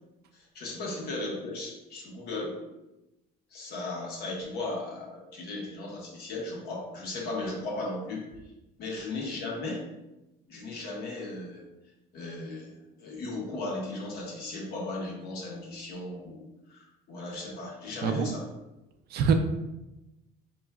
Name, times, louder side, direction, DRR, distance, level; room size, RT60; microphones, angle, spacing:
voice 1, 0.3-2.6 3.5-8.3 8.8-9.9 10.5-11.6 12.1-18.5, left 2 dB, 70° left, -2 dB, 1.2 m, -36 dB
voice 2, 18.0-18.3 19.1-19.3, right 6 dB, 70° right, 7 dB, 0.5 m, -24 dB
4.6 x 3.0 x 2.3 m, 0.98 s
cardioid pair, 110°, 17 cm